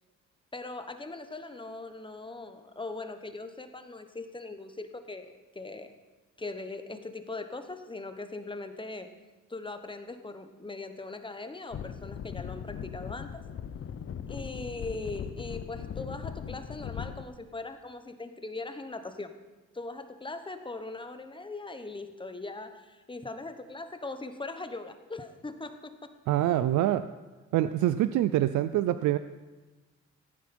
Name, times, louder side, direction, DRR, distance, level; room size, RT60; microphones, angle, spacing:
voice 1, 0.5-5.9 6.4-9.1 9.5-13.4 14.3-19.3 19.7-26.1, left 3 dB, 15° left, 8 dB, 1.1 m, -40 dB
sound 1, 11.7-17.2, left 8 dB, 45° left, 0.7 m, -39 dB
voice 2, 26.3-27.1 27.5-29.2, right 13 dB, 75° right, 13 dB, 0.5 m, -25 dB
15.5 x 9.4 x 4.4 m, 1.2 s
cardioid pair, 90°, 30 cm